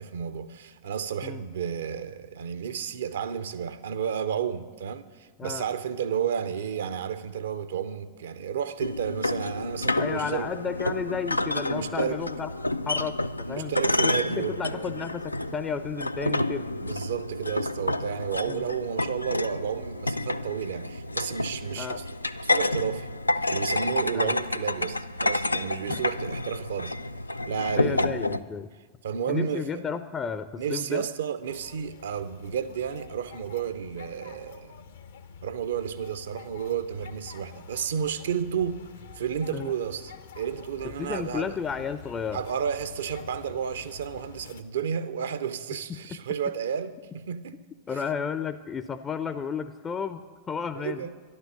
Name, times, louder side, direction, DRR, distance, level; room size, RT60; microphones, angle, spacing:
voice 1, 0.0-10.5 11.7-12.2 13.5-14.9 16.8-23.1 23.5-27.0 27.4-28.1 29.0-29.8 30.6-34.8 35.4-38.8 39.1-41.6 42.3-47.6 47.9-48.0 50.7-51.1, right 8 dB, 65° right, 0.7 m, -32 dB
sound 1, 8.8-28.4, left 2 dB, 85° left, 0.3 m, -29 dB
voice 2, 10.0-12.5 12.9-13.7 14.0-16.7 18.5-18.6 21.8-22.0 24.1-24.3 25.9-26.0 27.8-28.7 29.3-31.1 39.5-39.7 41.0-42.4 45.9-46.2 47.9-51.1, left 6 dB, 20° left, 0.5 m, -33 dB
sound 2, 31.5-44.6, left 6 dB, 65° left, 0.7 m, -47 dB
12.0 x 11.5 x 6.9 m
figure-of-eight pair, 90°, 0 cm